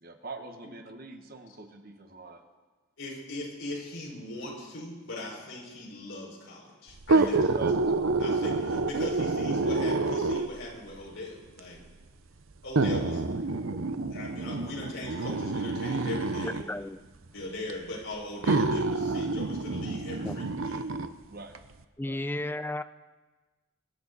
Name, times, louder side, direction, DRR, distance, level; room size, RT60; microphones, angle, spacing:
voice 1, 0.0-2.4 7.1-7.8 21.3-21.5 22.0-22.2, right 2 dB, 45° right, 5 dB, 1.4 m, -42 dB
voice 2, 3.0-7.4 8.2-11.8 12.6-13.2 14.1-16.6 17.3-20.8, left 1 dB, 65° left, -3 dB, 5.4 m, -40 dB
sound 1, 7.0-10.7 11.6-11.7 12.8-16.7 17.7-17.8 18.4-21.1 21.5-21.6, right 3 dB, 80° right, 0.8 m, -28 dB
voice 3, 16.4-17.0 20.2-20.4 22.0-22.8, left 1 dB, 10° left, 11 dB, 0.5 m, -34 dB
24.0 x 11.5 x 4.1 m, 1.2 s
head